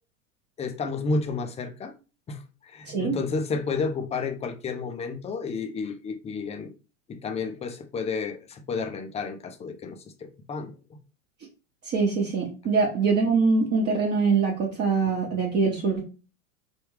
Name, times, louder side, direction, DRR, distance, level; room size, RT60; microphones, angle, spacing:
voice 1, 0.6-1.9 2.3-6.7 7.1-10.7, left 4 dB, 15° left, 0.4 m, -31 dB
voice 2, 11.8-16.0, right 4 dB, 35° right, 0.9 m, -23 dB
3.4 x 2.3 x 3.1 m
hypercardioid pair, 105°, 39 cm